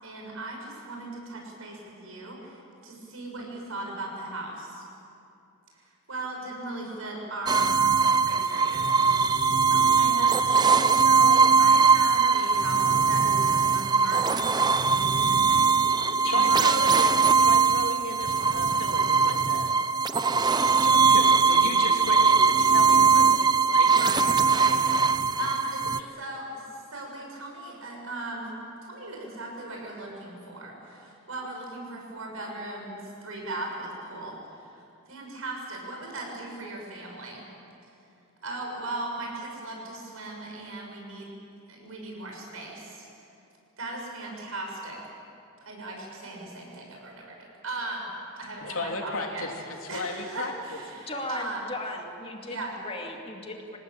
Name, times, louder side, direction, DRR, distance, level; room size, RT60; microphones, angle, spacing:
voice 1, 0.0-4.8 5.7-7.7 8.2-8.9 9.2-16.7 23.9-24.8 25.4-25.9 26.1-28.5 28.8-37.5 38.4-41.3 41.7-43.1 43.8-45.0 45.6-49.5 49.9-51.6 52.4-52.7, right 2 dB, 70° right, 0 dB, 6.9 m, -38 dB
sound 1, 7.5-26.0, right 5 dB, 20° right, 0.5 m, -21 dB
voice 2, 16.2-19.7 20.7-23.9 26.0-26.1 48.6-49.5 49.9-50.8, left 3 dB, 70° left, 1 dB, 3.3 m, -35 dB
voice 3, 51.1-53.8, left 2 dB, 25° left, 1 dB, 2.4 m, -37 dB
27.5 x 19.0 x 8.9 m, 2.7 s
head